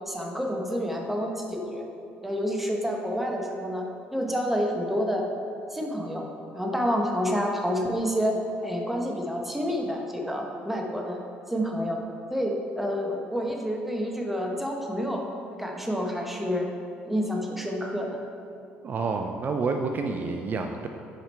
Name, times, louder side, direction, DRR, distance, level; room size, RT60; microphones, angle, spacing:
voice 1, 0.0-1.9 2.2-3.9 4.1-5.2 5.7-6.2 6.5-8.4 8.6-11.2 11.5-12.0 12.3-15.2 15.6-16.7 17.0-18.2, equal, 5° right, 0 dB, 1.0 m, -28 dB
voice 2, 18.8-20.9, right 4 dB, 45° right, 4 dB, 0.4 m, -29 dB
5.8 x 5.0 x 4.4 m, 2.7 s
supercardioid pair, 80°, 4 cm